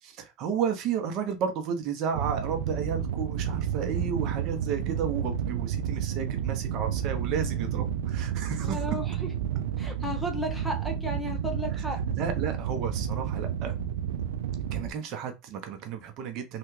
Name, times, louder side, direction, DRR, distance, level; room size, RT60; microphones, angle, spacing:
voice 1, 0.0-8.8 11.8-11.9 12.1-13.7 14.7-16.6, right 7 dB, 50° right, 0.8 m, -32 dB
sound 1, 2.1-14.9, right 9 dB, 85° right, 0.4 m, -31 dB
voice 2, 8.6-9.3 9.8-12.0, equal, ahead, 0.7 m, -34 dB
3.4 x 2.4 x 3.2 m
supercardioid pair, 110°, 0 cm